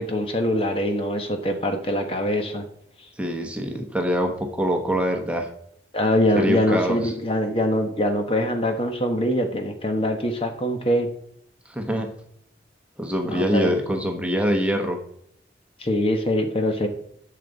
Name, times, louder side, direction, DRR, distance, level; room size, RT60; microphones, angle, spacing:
voice 1, 0.0-2.7 5.9-11.1 13.2-13.7 15.8-16.9, left 1 dB, 35° left, 5 dB, 1.2 m, -23 dB
voice 2, 3.2-5.5 6.4-7.1 11.7-12.1 13.0-15.0, equal, 5° right, 3 dB, 1.1 m, -24 dB
11.5 x 6.8 x 4.1 m, 0.70 s
head